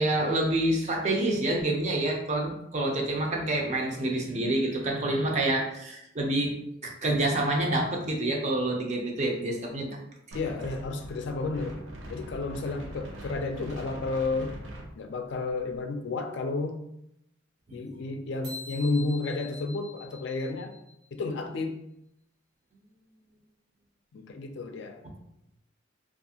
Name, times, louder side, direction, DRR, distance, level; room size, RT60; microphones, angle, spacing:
voice 1, 0.0-6.5 6.8-10.0 17.7-18.0, right 1 dB, 35° right, 1 dB, 0.5 m, -27 dB
voice 2, 10.3-11.8 12.1-14.6 15.0-16.8 17.7-20.7 21.1-21.8 24.1-25.0, left 3 dB, 60° left, 5 dB, 0.3 m, -31 dB
Wind, 10.3-15.8, right 1 dB, 80° right, 0.6 m, -43 dB
sound 1, 18.4-21.1, left 2 dB, 65° right, 1.0 m, -44 dB
2.7 x 2.4 x 2.7 m, 0.79 s
head